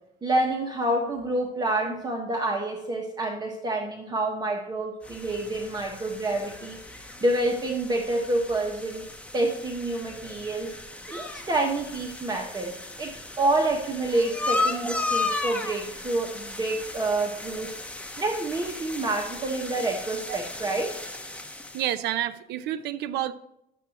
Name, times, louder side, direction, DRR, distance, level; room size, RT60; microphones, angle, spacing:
voice 1, 0.2-6.8 7.2-9.0 9.3-10.7 11.1-17.7 18.2-20.9, right 2 dB, 25° right, 1 dB, 1.3 m, -28 dB
sound 1, 5.0-22.0, left 3 dB, 5° left, 1.1 m, -35 dB
voice 2, 21.7-23.3, right 12 dB, 80° right, 13 dB, 0.6 m, -29 dB
11.5 x 7.6 x 2.9 m, 0.85 s
cardioid pair, 110°, 17 cm